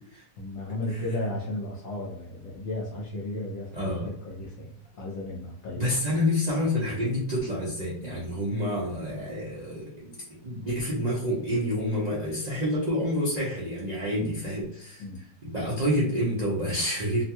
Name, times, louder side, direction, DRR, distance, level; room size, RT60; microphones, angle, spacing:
voice 1, 0.4-5.9 14.1-14.4 15.0-15.2, left 1 dB, 60° left, -4 dB, 1.0 m, -34 dB
voice 2, 3.7-4.1 5.7-15.0 15.4-17.2, equal, 75° right, -7 dB, 0.3 m, -28 dB
2.8 x 2.3 x 2.9 m, 0.65 s
omnidirectional pair, 1.8 m